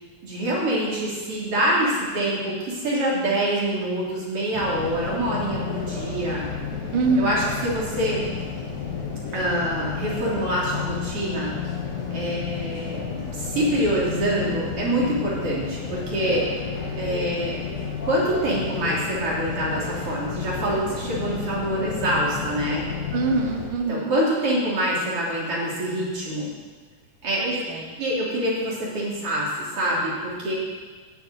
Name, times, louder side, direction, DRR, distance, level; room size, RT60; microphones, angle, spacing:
voice 1, 0.2-6.4 7.2-8.2 9.3-11.5 12.1-16.4 17.0-17.6 18.0-22.8 23.9-26.5 27.2-27.6 28.0-30.5, right 1 dB, 40° right, -6 dB, 4.0 m, -25 dB
sound 1, 4.5-23.7, left 6 dB, 60° left, 3.0 m, -31 dB
voice 2, 6.9-7.4 23.1-24.1 27.4-27.9, right 3 dB, 80° right, 3 dB, 1.1 m, -24 dB
11.5 x 6.9 x 9.0 m, 1.4 s
omnidirectional pair, 4.0 m